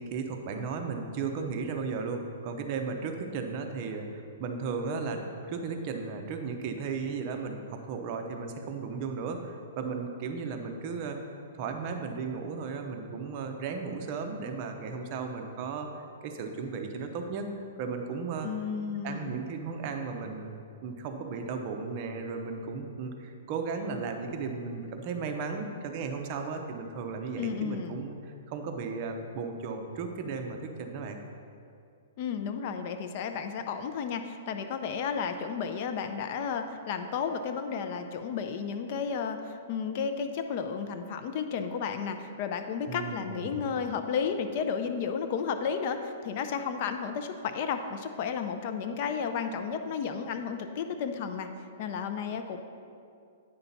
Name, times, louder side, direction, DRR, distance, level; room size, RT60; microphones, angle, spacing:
voice 1, 0.0-17.5 17.8-18.5 19.0-20.5 20.8-31.2 42.9-43.6, right 4 dB, 35° right, 4 dB, 0.7 m, -35 dB
voice 2, 18.4-19.4 27.4-28.0 32.2-51.5 51.8-52.6, left 6 dB, 40° left, 7 dB, 0.5 m, -33 dB
9.2 x 5.6 x 4.1 m, 2.5 s
hypercardioid pair, 155°, 0 cm